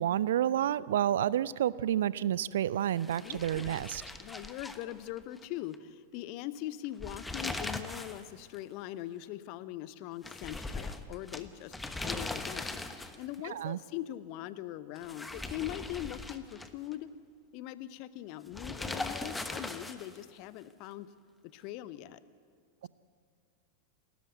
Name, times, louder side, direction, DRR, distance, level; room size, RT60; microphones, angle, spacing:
voice 1, 0.0-4.0 13.5-13.8 22.8-22.9, right 11 dB, 60° right, 20 dB, 0.4 m, -29 dB
sound 1, 3.0-5.4 5.7-5.8 6.8-8.2 8.5-8.6 10.2-13.3 14.9-16.9 18.5-20.2, left 2 dB, 10° left, 1.2 m, -40 dB
voice 2, 3.2-3.9 4.2-17.1 17.5-21.1 21.4-22.2, left 13 dB, 45° left, 16 dB, 0.8 m, -41 dB
29.5 x 13.5 x 8.2 m, 2.3 s
figure-of-eight pair, 90°, 0 cm